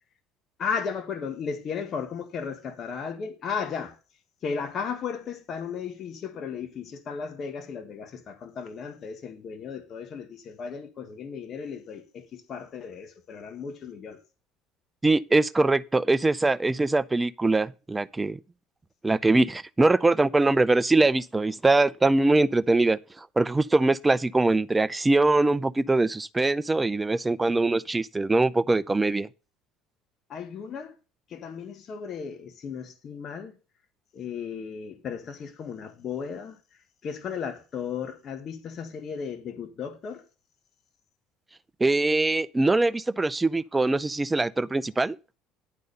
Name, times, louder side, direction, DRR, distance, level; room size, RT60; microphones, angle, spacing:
voice 1, 0.6-4.0 4.4-14.2 30.3-31.0 31.3-33.5 34.1-40.2, left 6 dB, 45° left, 1.5 m, -35 dB
voice 2, 15.0-18.4 19.0-29.3 41.8-45.2, right 2 dB, 15° right, 0.5 m, -22 dB
10.5 x 4.2 x 6.6 m
supercardioid pair, 95°, 0 cm